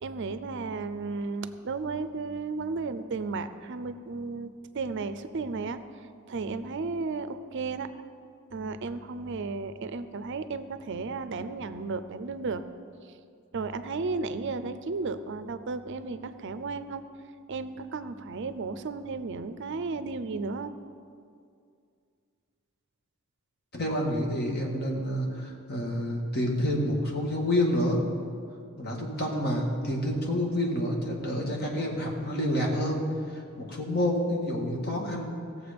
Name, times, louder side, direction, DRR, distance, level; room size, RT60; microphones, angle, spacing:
voice 1, 0.0-4.5 4.7-5.8 6.3-7.9 8.5-12.6 13.5-17.0 17.5-20.7, right 4 dB, 55° right, 11 dB, 0.5 m, -34 dB
voice 2, 23.7-28.0 28.8-33.0 33.3-35.4, left 1 dB, 50° left, 0 dB, 1.9 m, -28 dB
17.0 x 7.2 x 5.1 m, 2.3 s
head